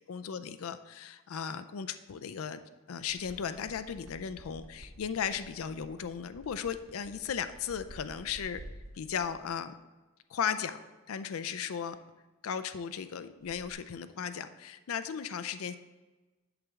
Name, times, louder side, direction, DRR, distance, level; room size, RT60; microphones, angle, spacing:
voice 1, 0.0-2.6 2.9-8.6 8.9-9.7 10.3-10.8 11.1-12.0 12.4-15.8, left 7 dB, 75° left, 11 dB, 0.4 m, -36 dB
sound 1, 3.0-9.5 13.4-13.7, right 1 dB, 65° right, 0.8 m, -51 dB
8.0 x 7.0 x 3.6 m, 1.2 s
head